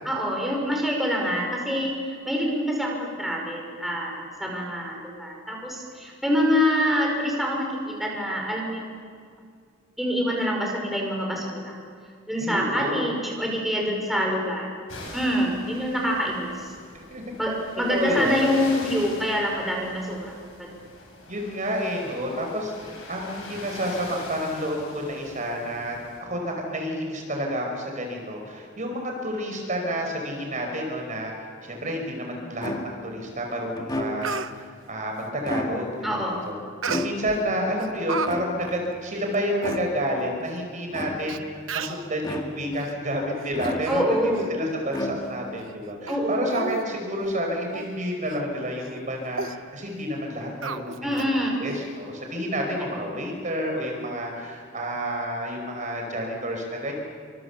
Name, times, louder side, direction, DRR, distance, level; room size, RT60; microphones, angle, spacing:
voice 1, 0.0-9.0 10.0-11.7 12.3-14.7 15.1-16.7 17.4-20.3 20.6-20.7 36.0-36.4 43.9-44.5 46.1-46.5 51.0-51.6 52.9-53.0, equal, ahead, -2 dB, 5.6 m, -26 dB
voice 2, 12.4-13.1 16.9-17.2 17.9-18.4 21.3-31.3 31.6-36.6 36.8-50.9 51.6-57.0, equal, 35° right, 2 dB, 4.8 m, -30 dB
sound 1, 14.9-26.2, left 2 dB, 70° left, 7.5 m, -43 dB
sound 2, 32.6-33.2 33.8-34.5 35.3-36.1 36.9-37.6 38.3-38.9 39.6-40.2 40.9-41.5 42.2-42.8 43.6-44.2 44.9-45.6, left 1 dB, 20° left, 2.0 m, -33 dB
Speech, 33.5-33.6 34.0-34.5 36.8-37.4 37.8-38.3 38.6-38.8 39.3-39.4 39.6-39.8 40.6-40.7 41.3-41.4 41.7-42.1 42.7-42.9 43.4-44.0 44.3-44.5 44.9-45.0 45.6-45.7 46.1-46.2 46.5-46.9 47.2-47.3 47.7-47.9 48.3-48.4 48.8-49.0 49.3-49.6 50.6-51.3 51.7-51.8, right 5 dB, 70° right, 1.1 m, -33 dB
29.0 x 26.0 x 7.1 m, 2.2 s
head